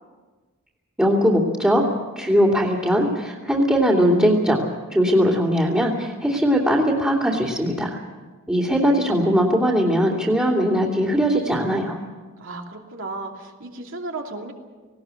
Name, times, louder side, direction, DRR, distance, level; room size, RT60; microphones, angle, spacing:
voice 1, 1.0-1.8 2.1-4.6 4.9-8.0 8.5-12.0, equal, 5° right, -7 dB, 2.7 m, -20 dB
voice 2, 12.4-14.5, right 2 dB, 60° right, 1 dB, 2.8 m, -34 dB
19.0 x 18.5 x 8.3 m, 1.3 s
head